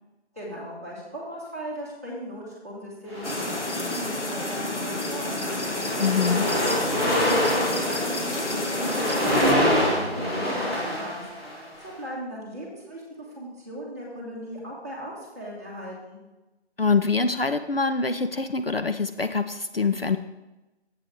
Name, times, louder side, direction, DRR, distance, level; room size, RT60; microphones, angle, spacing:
voice 1, 0.3-5.7 6.2-11.2 11.8-16.2, equal, 15° right, -8 dB, 1.3 m, -38 dB
sound 1, 3.1-4.1 4.8-5.1 5.3-11.8, equal, 25° left, 2.3 m, -26 dB
sound 2, 3.2-9.5, left 1 dB, 80° left, 1.5 m, -29 dB
voice 2, 6.0-6.5 16.8-20.2, left 4 dB, 55° left, 9 dB, 0.5 m, -24 dB
7.8 x 7.5 x 4.6 m, 1.0 s
figure-of-eight pair, 170°, 34 cm